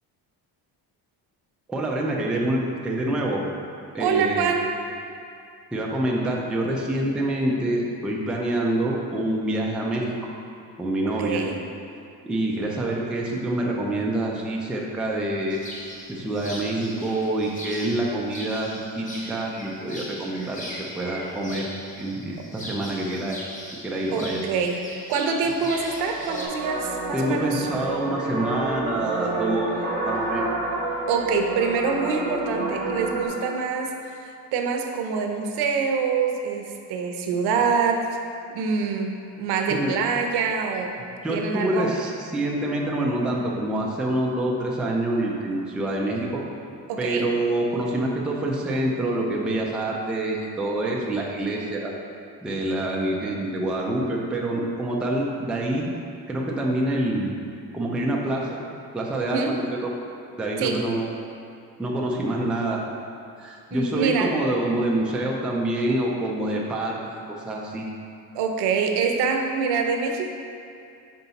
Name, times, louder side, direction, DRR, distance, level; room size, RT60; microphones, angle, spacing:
voice 1, 1.7-3.4 3.9-4.5 5.7-10.3 10.8-11.4 12.2-15.6 16.1-21.7 22.0-23.4 23.8-24.4 27.1-29.7 30.0-30.5 39.7-39.9 41.2-46.4 47.0-51.9 52.4-55.9 56.3-57.3 57.7-58.6 58.9-59.9 60.4-61.0 61.8-62.8 63.4-67.9, right 1 dB, 5° right, -3 dB, 0.3 m, -26 dB
voice 2, 4.0-4.7 11.0-11.6 24.1-24.8 25.1-27.7 31.1-38.1 38.5-40.9 41.3-41.9 46.9-47.3 59.2-59.6 60.6-60.8 63.7-64.4 68.3-70.3, right 5 dB, 85° right, 3 dB, 0.7 m, -25 dB
sound 1, 15.5-26.5, left 1 dB, 20° left, 0.7 m, -39 dB
sound 2, 25.7-33.3, right 2 dB, 20° right, 0.8 m, -29 dB
5.5 x 4.6 x 4.0 m, 2.4 s
cardioid pair, 165°, 38 cm